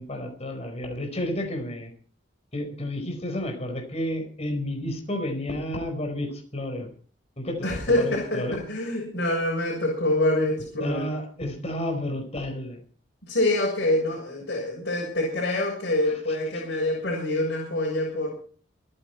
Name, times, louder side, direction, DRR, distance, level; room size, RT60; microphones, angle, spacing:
voice 1, 0.0-1.9 2.5-6.9 7.4-8.6 10.8-12.8, left 1 dB, 35° left, 5 dB, 4.8 m, -31 dB
voice 2, 7.6-11.0 13.2-18.3, left 1 dB, 55° left, -3 dB, 7.3 m, -26 dB
27.5 x 9.9 x 4.6 m, 0.44 s
head